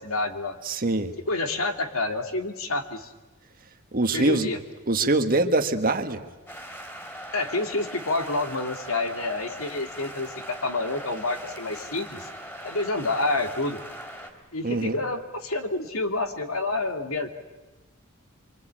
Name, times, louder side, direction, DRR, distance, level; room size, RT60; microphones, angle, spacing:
voice 1, 0.0-0.6 1.3-3.1 4.1-4.6 7.3-12.3 12.6-13.8 14.5-17.3, left 2 dB, 90° left, 6 dB, 2.5 m, -28 dB
voice 2, 0.6-1.2 3.9-4.5 4.9-6.2 14.6-15.0, right 2 dB, 45° right, 7 dB, 1.6 m, -23 dB
sound 1, 6.5-14.3, equal, 15° left, 3.6 m, -40 dB
25.5 x 25.0 x 8.9 m, 1.1 s
head